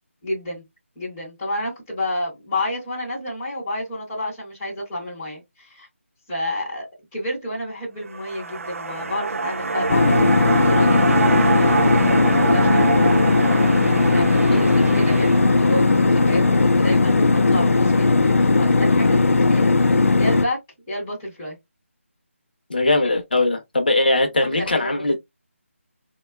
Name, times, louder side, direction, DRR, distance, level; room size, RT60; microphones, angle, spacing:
voice 1, 0.2-0.6 1.0-5.9 6.3-11.1 11.4-13.7 14.0-20.6 20.9-21.6 23.0-23.2 24.5-25.0, left 1 dB, 5° left, 0.6 m, -30 dB
sound 1, 8.0-18.4 18.8-18.9, right 4 dB, 85° right, 0.4 m, -26 dB
sound 2, 9.9-20.4, left 3 dB, 85° left, 0.4 m, -17 dB
voice 2, 22.7-25.2, left 2 dB, 45° left, 0.6 m, -20 dB
3.5 x 2.2 x 2.2 m
figure-of-eight pair, 180°, 7 cm